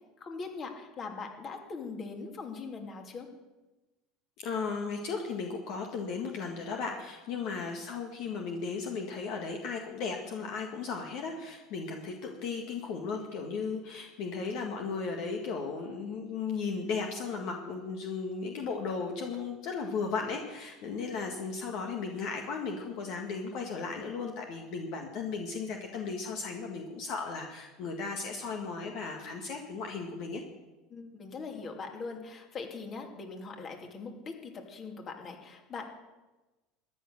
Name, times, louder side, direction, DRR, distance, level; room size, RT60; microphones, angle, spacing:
voice 1, 0.2-3.3 30.9-35.8, left 4 dB, 40° left, 3 dB, 2.6 m, -41 dB
voice 2, 4.4-30.4, left 4 dB, 65° left, 2 dB, 1.7 m, -36 dB
13.5 x 10.0 x 6.6 m, 1.1 s
hypercardioid pair, 80°, 0 cm